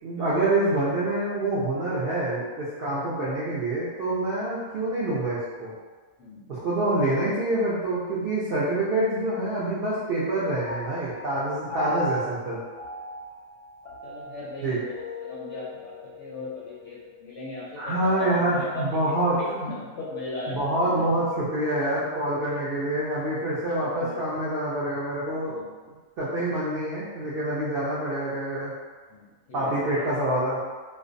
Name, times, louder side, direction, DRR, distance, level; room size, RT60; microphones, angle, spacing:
voice 1, 0.0-5.7 6.5-12.6 14.6-14.8 17.8-19.7 20.5-25.5 26.2-28.7 29.5-30.6, right 1 dB, 70° right, -9 dB, 0.5 m, -26 dB
Piano, 10.7-17.3, left 1 dB, 85° left, 1.1 m, -38 dB
voice 2, 14.0-14.9 15.2-21.0 22.5-22.6 23.7-24.2 25.4-25.7 29.1-29.8, left 2 dB, 65° left, -7 dB, 0.7 m, -38 dB
2.4 x 2.0 x 2.5 m, 1.4 s
omnidirectional pair, 1.5 m